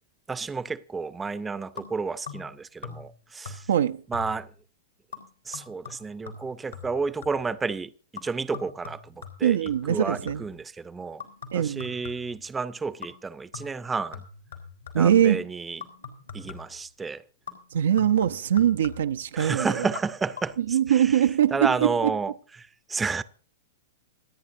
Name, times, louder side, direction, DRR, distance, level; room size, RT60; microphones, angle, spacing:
voice 1, 0.3-3.7 4.1-4.5 5.5-7.9 8.2-11.2 11.5-14.2 14.9-15.8 16.3-17.2 19.3-21.3 21.5-22.3 22.6-23.2, right 4 dB, 15° right, 0.6 m, -31 dB
sound 1, 1.8-2.6 2.8-3.2 3.4-3.8 4.1-4.6 5.1-7.5 8.2-10.6 11.2-12.5 13.0-13.3 13.5-15.2 15.8-16.8 17.5-19.2 19.8-20.0 20.3-20.4, left 6 dB, 85° left, 3.6 m, -43 dB
voice 2, 3.7-4.0 9.4-10.4 11.5-11.9 14.9-15.4 17.7-19.9 20.6-22.1, right 10 dB, 70° right, 0.5 m, -22 dB
27.5 x 9.5 x 2.6 m
figure-of-eight pair, 100°, 0 cm